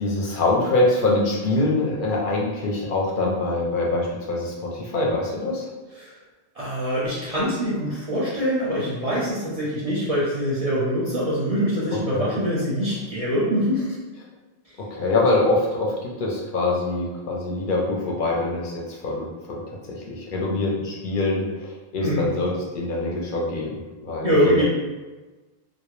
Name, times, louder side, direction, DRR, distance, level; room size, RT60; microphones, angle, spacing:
voice 1, 0.0-5.7 11.9-12.3 14.9-23.7 24.0-24.6, left 2 dB, 60° left, -3 dB, 0.6 m, -24 dB
voice 2, 6.6-14.0 22.0-22.2 24.2-24.6, equal, 45° right, -8 dB, 0.6 m, -24 dB
2.1 x 2.1 x 3.0 m, 1.2 s
omnidirectional pair, 1.1 m